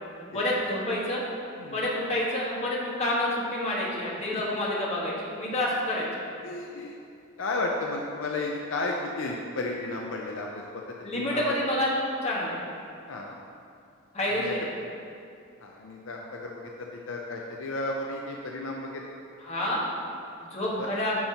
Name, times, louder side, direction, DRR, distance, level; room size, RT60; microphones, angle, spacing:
voice 1, 0.3-1.2 1.7-6.1 11.0-12.6 14.1-14.7 19.4-19.9 20.4-21.2, left 1 dB, 35° left, -5 dB, 1.4 m, -28 dB
voice 2, 1.5-1.9 4.3-4.4 6.4-7.0 7.4-11.5 13.1-13.4 14.3-14.7 15.6-19.0 20.8-20.9, left 2 dB, 70° left, 0 dB, 0.6 m, -33 dB
10.5 x 5.8 x 2.9 m, 2.4 s
head